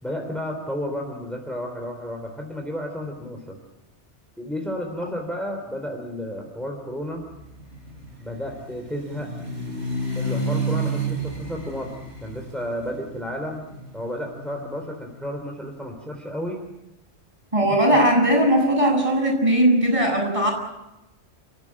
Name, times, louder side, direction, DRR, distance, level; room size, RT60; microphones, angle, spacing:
voice 1, 0.0-3.6 4.4-7.3 8.2-9.3 10.1-11.9 12.2-13.7 13.9-16.6 17.9-18.0, equal, ahead, 2 dB, 3.5 m, -32 dB
sound 1, 7.2-15.2, right 2 dB, 70° right, 4.7 m, -31 dB
voice 2, 17.5-20.5, right 1 dB, 30° right, 0 dB, 7.9 m, -19 dB
29.5 x 15.5 x 8.7 m, 0.96 s
omnidirectional pair, 1.2 m